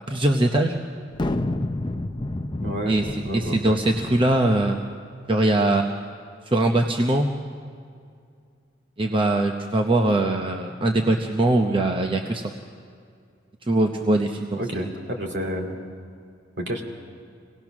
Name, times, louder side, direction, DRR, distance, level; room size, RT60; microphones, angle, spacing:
voice 1, 0.1-0.8 2.9-3.1 3.3-4.8 5.3-5.9 6.5-7.3 9.0-12.4 13.7-14.9, right 2 dB, 25° right, 3 dB, 0.7 m, -21 dB
sound 1, 1.1-4.8, left 1 dB, 25° left, 0.6 m, -30 dB
voice 2, 2.6-3.0 3.2-3.8 14.6-15.8 16.6-16.8, equal, 60° right, 2 dB, 2.6 m, -29 dB
25.5 x 18.5 x 6.0 m, 2.3 s
head